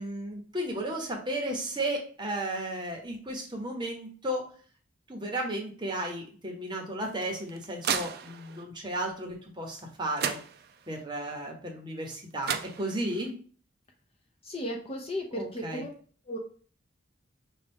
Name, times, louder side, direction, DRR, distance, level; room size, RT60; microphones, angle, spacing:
voice 1, 0.0-4.4 5.1-10.4 10.9-13.3 15.3-15.8, right 1 dB, 20° right, 0 dB, 0.9 m, -34 dB
sound 1, 7.0-8.6 9.8-9.9 10.2-11.0 12.1-12.2 12.4-13.3, right 7 dB, 50° right, 0.4 m, -34 dB
voice 2, 14.4-15.9 16.3-16.4, equal, 30° left, 1 dB, 0.7 m, -35 dB
5.6 x 2.3 x 3.5 m, 0.43 s
head